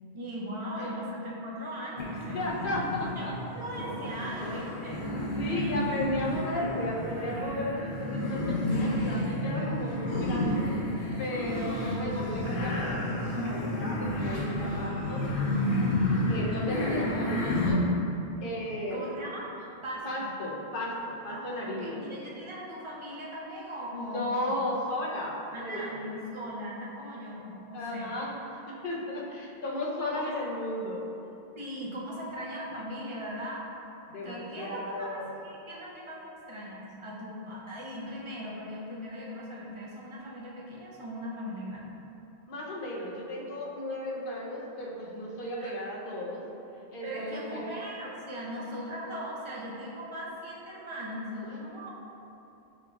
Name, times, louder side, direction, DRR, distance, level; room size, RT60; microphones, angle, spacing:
voice 1, 0.1-2.5 3.2-5.7 11.7-12.2 16.1-16.7 18.9-19.5 19.8-20.3 21.3-24.7 25.5-28.2 30.1-30.3 31.5-33.7 34.2-41.9 45.6-45.7 47.0-51.9, equal, 35° right, -5 dB, 0.6 m, -39 dB
sound 1, 2.0-17.7, left 1 dB, 85° left, 1.0 m, -31 dB
voice 2, 2.3-3.4 5.2-10.7 11.2-15.3 16.3-17.8 18.4-19.1 20.0-22.0 23.9-26.0 27.7-28.4 28.7-31.1 34.1-35.3 42.5-46.4 46.9-47.6, left 1 dB, 60° left, -4 dB, 0.8 m, -34 dB
5.2 x 3.7 x 2.3 m, 2.9 s
omnidirectional pair, 1.1 m